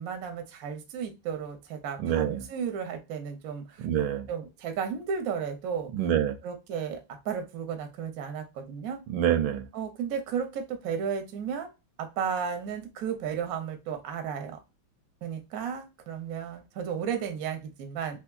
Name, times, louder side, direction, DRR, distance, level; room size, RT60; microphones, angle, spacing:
voice 1, 0.0-3.9 4.3-5.9 6.4-9.0 9.7-11.7 12.0-14.6 15.2-18.2, right 7 dB, 65° right, 0.9 m, -34 dB
voice 2, 2.0-2.4 3.8-4.3 5.9-6.4 9.1-9.6, right 10 dB, 80° right, 1.3 m, -26 dB
3.4 x 3.1 x 2.3 m
omnidirectional pair, 2.2 m